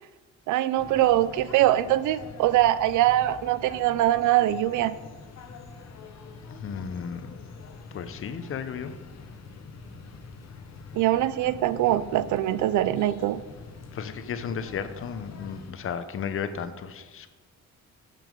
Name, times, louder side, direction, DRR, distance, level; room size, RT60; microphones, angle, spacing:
voice 1, 0.5-4.9 10.9-13.4, right 14 dB, 80° right, 16 dB, 0.5 m, -23 dB
sound 1, 0.7-15.7, left 4 dB, 60° left, 1.1 m, -45 dB
voice 2, 6.5-7.3 7.9-8.9 13.9-17.3, left 7 dB, 45° left, 10 dB, 0.7 m, -34 dB
6.9 x 6.1 x 5.3 m, 1.2 s
cardioid pair, 90°, 30 cm